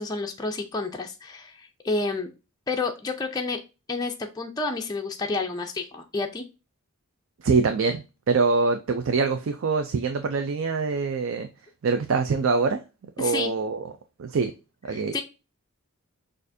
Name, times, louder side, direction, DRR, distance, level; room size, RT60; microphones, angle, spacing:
voice 1, 0.0-2.3 2.7-3.6 3.9-6.4 13.2-13.5 14.9-15.2, left 3 dB, 15° left, 0.4 m, -30 dB
voice 2, 7.4-11.5 11.8-12.8 13.2-13.9 14.2-14.5 14.8-15.2, right 4 dB, 60° right, 0.4 m, -24 dB
6.3 x 2.6 x 2.6 m
head